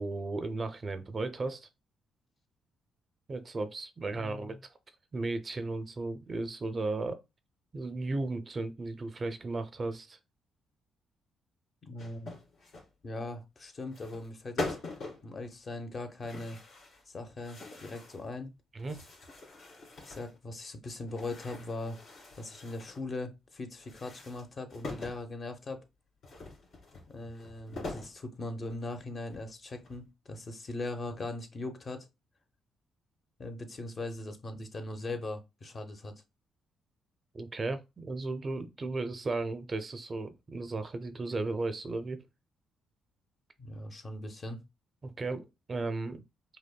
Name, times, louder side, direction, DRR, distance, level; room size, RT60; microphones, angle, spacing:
voice 1, 0.0-1.7 3.3-4.6 5.1-7.2 7.7-10.2 18.7-19.0 37.3-42.2 45.0-46.2, right 3 dB, 35° right, 0.4 m, -35 dB
voice 2, 4.1-4.6 11.8-12.3 13.0-14.8 15.2-16.6 17.1-18.5 20.1-22.0 22.3-25.8 27.1-32.1 33.4-36.1 43.6-44.6, left 2 dB, 40° left, 0.7 m, -40 dB
sound 1, 12.0-12.9 13.9-14.3 14.6-15.3 16.2-17.0 17.4-18.2 18.8-20.4 21.1-23.0 23.8-25.2 26.2-28.2 28.7-28.8 29.3-30.1, left 2 dB, 70° left, 1.9 m, -43 dB
5.1 x 2.1 x 2.2 m
cardioid pair, 90°, 0 cm